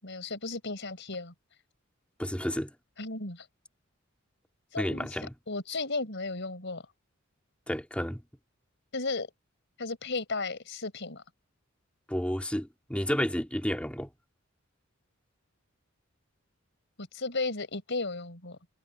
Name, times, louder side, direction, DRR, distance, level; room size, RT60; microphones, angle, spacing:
voice 1, 0.0-1.3 3.0-3.5 4.7-5.1 5.5-6.8 8.9-9.3 9.8-11.2 17.0-18.6, left 3 dB, 60° left, 4.8 m, -34 dB
voice 2, 2.2-2.7 4.8-5.3 7.7-8.2 12.1-14.1, equal, 5° left, 2.8 m, -31 dB
head